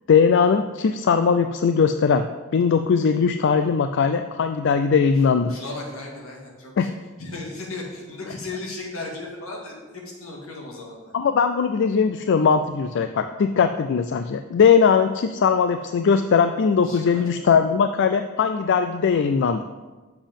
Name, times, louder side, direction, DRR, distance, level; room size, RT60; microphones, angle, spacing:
voice 1, 0.1-2.2 2.5-5.5 6.8-6.9 11.1-19.6, left 6 dB, 60° left, 8 dB, 0.4 m, -20 dB
voice 2, 5.1-6.9 7.2-11.1 16.8-17.2, left 2 dB, 80° left, -1 dB, 2.1 m, -36 dB
7.2 x 7.0 x 5.3 m, 1.3 s
head